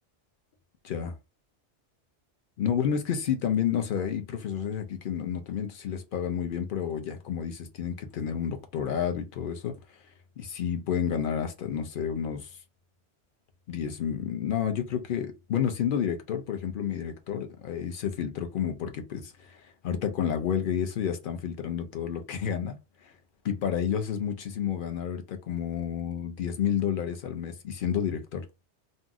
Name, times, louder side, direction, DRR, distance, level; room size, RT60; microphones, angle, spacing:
voice 1, 0.8-1.2 2.6-10.0 10.4-12.5 13.7-22.8 23.0-23.1 23.4-28.5, left 8 dB, 55° left, 0.7 m, -30 dB
2.6 x 2.0 x 3.5 m
omnidirectional pair, 1.2 m